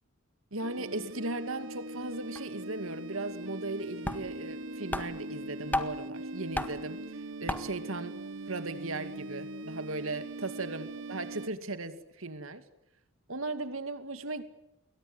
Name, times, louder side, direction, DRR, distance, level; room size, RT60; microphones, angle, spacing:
voice 1, 0.5-8.2 8.5-12.6 13.3-14.4, right 2 dB, 85° right, 10 dB, 2.5 m, -37 dB
sound 1, 0.6-11.5, right 2 dB, 70° right, 1.2 m, -41 dB
sound 2, 2.1-2.2 2.4-2.5 3.7-3.8 4.0-4.6 4.9-6.1 6.5-6.9 7.5-7.9, left 1 dB, 10° left, 1.7 m, -34 dB
29.0 x 23.0 x 8.1 m, 0.83 s
head